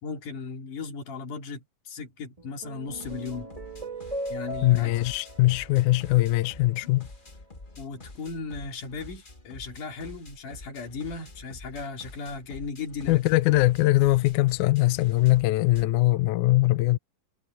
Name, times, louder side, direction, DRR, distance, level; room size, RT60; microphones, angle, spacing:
voice 1, 0.0-3.5 4.3-4.9 6.8-6.9 7.8-13.2, left 4 dB, 65° left, 4.3 m, -36 dB
sound 1, 2.4-6.9, right 1 dB, 15° right, 1.7 m, -39 dB
sound 2, 2.9-15.8, left 2 dB, 40° left, 0.7 m, -48 dB
voice 2, 4.6-7.1 13.1-17.0, left 18 dB, 80° left, 1.8 m, -22 dB
omnidirectional pair, 4.0 m